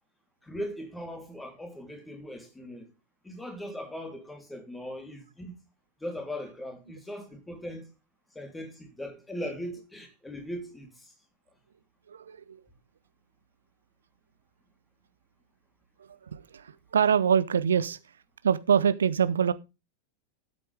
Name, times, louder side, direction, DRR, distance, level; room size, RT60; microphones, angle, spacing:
voice 1, 0.4-2.9 3.2-5.5 6.0-7.9 8.3-11.1, equal, 10° left, 3.3 m, -39 dB
voice 2, 12.1-12.6 16.3-18.0 18.4-19.5, right 7 dB, 70° right, 0.6 m, -24 dB
13.5 x 8.5 x 3.4 m
figure-of-eight pair, 90°, 0 cm